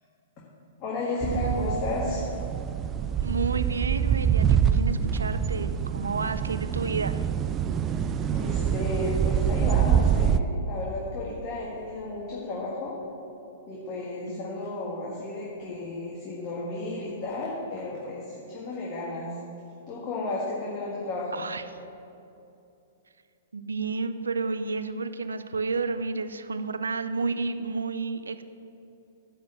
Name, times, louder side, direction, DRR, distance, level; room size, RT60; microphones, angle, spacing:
voice 1, 0.8-2.3 7.9-13.0 13.7-19.3 19.9-21.4, left 2 dB, 35° left, -5 dB, 1.7 m, -33 dB
sound 1, 1.2-10.4, right 8 dB, 25° right, 0.3 m, -25 dB
voice 2, 3.2-7.2 21.3-21.6 23.5-28.4, right 4 dB, 85° right, 11 dB, 0.5 m, -31 dB
10.5 x 4.4 x 7.8 m, 2.7 s
hypercardioid pair, 120°, 0 cm